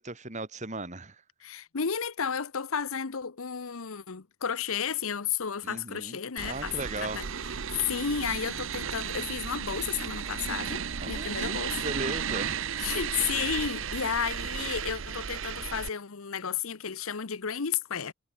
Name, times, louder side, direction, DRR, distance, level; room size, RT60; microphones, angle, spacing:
voice 1, 0.0-1.2 5.6-6.2 6.4-7.2 11.0-12.6, right 2 dB, 35° right, 2.8 m, -37 dB
voice 2, 1.4-7.3 7.7-11.8 12.8-18.1, left 7 dB, 75° left, 0.9 m, -32 dB
sound 1, 6.4-15.9, right 7 dB, 65° right, 0.9 m, -34 dB
head